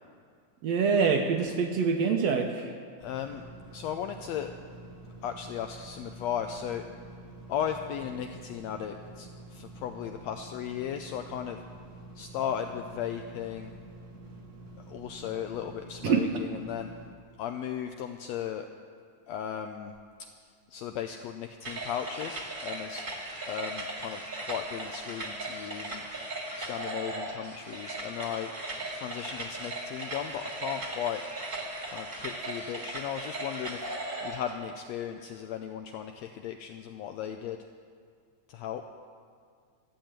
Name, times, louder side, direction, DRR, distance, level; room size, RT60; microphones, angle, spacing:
voice 1, 0.6-2.7 16.0-16.2, right 5 dB, 70° right, 4 dB, 1.7 m, -25 dB
voice 2, 3.0-3.4 3.7-4.5 5.2-6.8 7.5-11.6 12.1-13.7 14.8-16.9 17.4-18.7 19.3-19.9 20.7-23.0 23.5-26.0 26.6-28.5 28.9-31.2 31.9-37.6 38.5-38.8, left 9 dB, 85° left, 6 dB, 1.5 m, -36 dB
sound 1, 3.0-17.1, right 2 dB, 45° right, 1.0 m, -48 dB
sound 2, 21.6-34.5, right 2 dB, 20° right, 1.5 m, -38 dB
13.5 x 7.9 x 8.9 m, 2.1 s
omnidirectional pair, 3.6 m